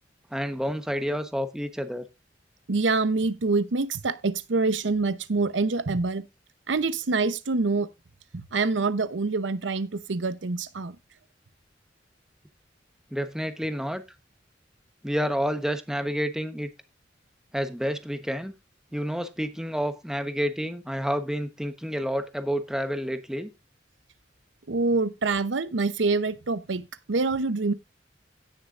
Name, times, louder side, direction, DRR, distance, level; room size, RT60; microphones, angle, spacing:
voice 1, 0.3-2.0 13.1-14.0 15.0-16.7 17.5-18.5 18.9-23.5, equal, 5° right, 1.1 m, -29 dB
voice 2, 2.7-6.3 6.7-7.9 8.3-11.0 24.7-27.7, right 3 dB, 90° right, 0.8 m, -26 dB
17.0 x 6.6 x 2.5 m
head